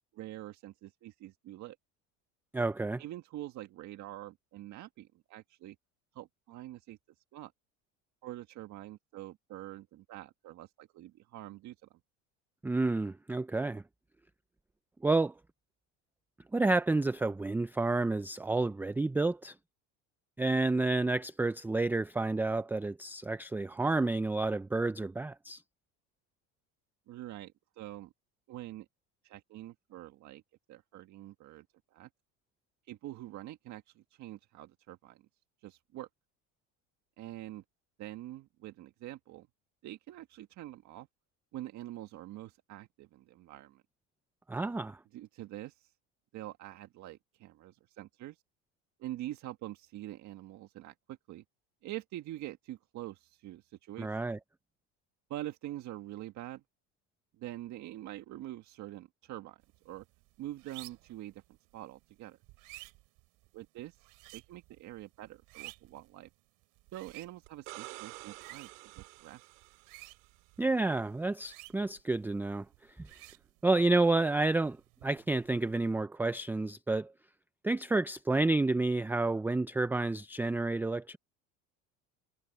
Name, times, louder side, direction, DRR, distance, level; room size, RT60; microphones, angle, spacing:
voice 1, 0.1-1.8 3.0-5.7 6.1-7.0 7.3-7.5 8.2-12.0 27.1-28.1 28.5-28.9 29.2-30.4 30.7-31.6 31.9-32.1 32.9-35.2 35.6-36.1 37.2-37.6 38.0-39.5 39.8-41.1 41.5-43.8 45.1-45.9 46.3-48.4 49.0-51.4 51.8-54.2 55.3-56.6 57.4-60.0 60.4-61.4 61.7-62.4 63.5-66.3 66.9-69.5, right 15 dB, 50° right, 1.6 m, -45 dB
voice 2, 2.5-3.0 12.6-13.8 15.0-15.3 16.5-19.5 20.4-25.6 44.5-45.0 54.0-54.4 70.6-72.7 73.6-74.8 75.0-77.1 77.6-81.2, right 2 dB, 5° right, 0.5 m, -30 dB
sound 1, 59.6-75.9, right 22 dB, 65° right, 5.1 m, -55 dB
sound 2, 67.5-70.3 73.1-73.2, right 26 dB, 85° right, 3.5 m, -49 dB
supercardioid pair, 110°, 35 cm